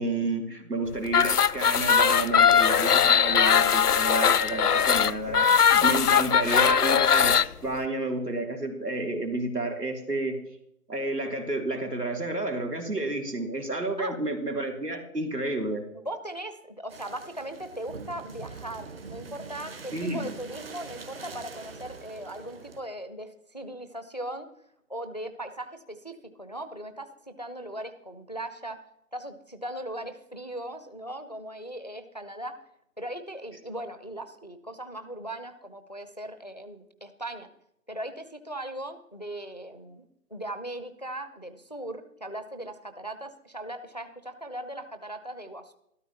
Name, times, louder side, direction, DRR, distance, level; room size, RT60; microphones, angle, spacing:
voice 1, 0.0-10.4 10.9-15.8 19.9-20.3, right 2 dB, 85° right, 3 dB, 3.3 m, -30 dB
sound 1, 1.1-7.5, left 7 dB, 75° left, 0.6 m, -20 dB
voice 2, 15.9-24.5 24.9-28.8 29.1-32.6 33.0-37.5 37.9-40.1 40.3-45.7, right 1 dB, 30° left, 10 dB, 0.6 m, -38 dB
sound 2, 16.9-22.8, right 4 dB, 40° right, 1.5 m, -44 dB
13.0 x 13.0 x 4.2 m, 0.77 s
figure-of-eight pair, 150°, 47 cm